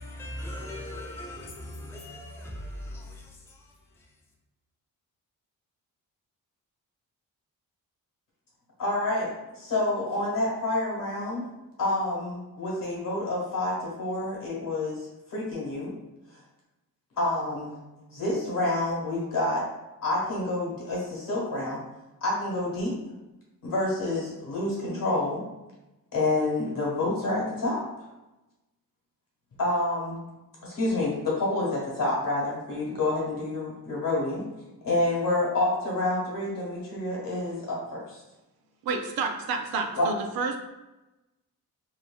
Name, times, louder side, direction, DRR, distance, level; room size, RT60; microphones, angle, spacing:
voice 1, 0.0-3.7, left 1 dB, 5° left, 0.4 m, -39 dB
voice 2, 8.8-11.5 11.8-15.9 17.2-17.8 18.1-19.6 20.0-21.8 22.2-22.9 23.6-25.4 26.1-27.8 29.6-30.2 30.6-34.4 34.8-38.2 40.0-40.1, left 2 dB, 65° left, 1.3 m, -28 dB
voice 3, 38.8-40.6, right 4 dB, 85° right, 0.5 m, -30 dB
3.1 x 2.6 x 2.3 m
cardioid pair, 125°, 36 cm